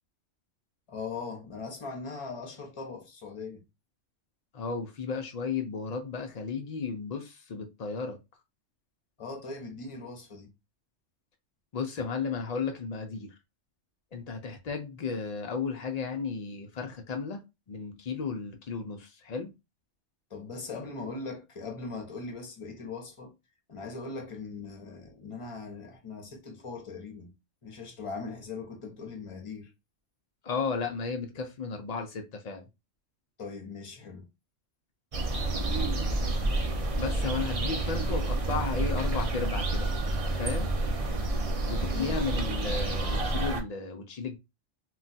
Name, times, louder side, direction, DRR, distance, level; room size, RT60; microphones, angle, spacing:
voice 1, 0.9-3.6 9.2-10.5 20.3-23.3 23.7-27.3 27.6-29.7 33.4-34.3 41.9-42.2, left 4 dB, 35° left, 0.6 m, -40 dB
voice 2, 4.5-8.2 11.7-13.3 14.1-17.4 17.7-19.5 30.4-32.7 37.0-40.0 40.3-40.7 41.7-44.4, left 5 dB, 85° left, 0.3 m, -34 dB
sound 1, 35.1-43.6, right 2 dB, 50° right, 0.4 m, -29 dB
2.3 x 2.3 x 3.9 m
omnidirectional pair, 1.3 m